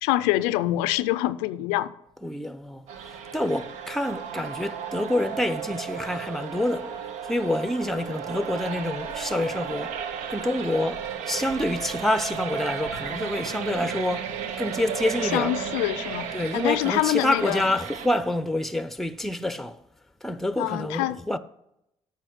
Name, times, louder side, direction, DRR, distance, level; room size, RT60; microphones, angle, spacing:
voice 1, 0.0-1.9 15.3-17.6 20.6-21.2, left 16 dB, 90° left, 0.4 m, -25 dB
voice 2, 2.2-6.9 7.2-10.0 10.3-15.5 16.3-19.8 20.2-21.4, left 1 dB, ahead, 0.7 m, -27 dB
sound 1, 2.9-18.1, right 7 dB, 80° right, 0.8 m, -34 dB
9.0 x 5.7 x 7.8 m
supercardioid pair, 55°, 12 cm